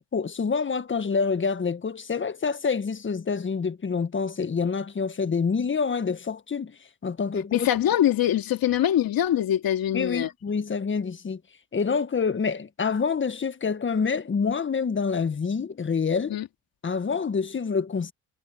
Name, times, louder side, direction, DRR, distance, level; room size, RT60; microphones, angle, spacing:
voice 1, 0.0-7.7 9.9-11.4 11.7-16.4 16.8-18.1, left 5 dB, 30° left, 1.7 m, -27 dB
voice 2, 7.5-10.3 16.3-16.5, left 11 dB, 60° left, 3.0 m, -23 dB
supercardioid pair, 70°, 41 cm